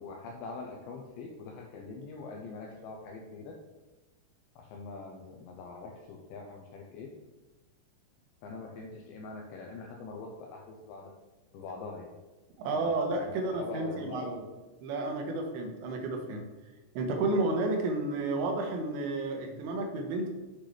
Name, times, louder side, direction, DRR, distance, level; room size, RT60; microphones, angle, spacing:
voice 1, 0.0-3.5 4.6-7.1 8.4-11.1 11.5-12.1 12.7-14.6, left 3 dB, 80° left, 0 dB, 2.6 m, -43 dB
voice 2, 12.6-14.4 14.8-16.4 16.9-20.3, right 2 dB, 75° right, 3 dB, 2.9 m, -31 dB
8.2 x 6.0 x 3.3 m, 1.2 s
omnidirectional pair, 5.9 m